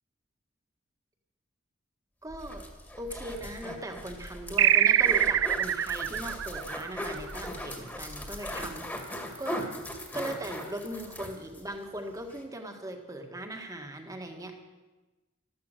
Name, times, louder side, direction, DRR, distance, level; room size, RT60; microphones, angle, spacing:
voice 1, 2.2-2.7 3.0-9.7 10.1-14.6, right 1 dB, 20° right, 4 dB, 1.6 m, -39 dB
sound 1, 2.3-8.7, equal, 40° left, 1.9 m, -48 dB
sound 2, 2.3-11.7 12.0-12.1 12.3-12.4, left 1 dB, 10° left, 1.9 m, -39 dB
sound 3, 4.6-7.6, right 10 dB, 80° right, 0.5 m, -24 dB
13.5 x 13.0 x 6.6 m, 1.2 s
head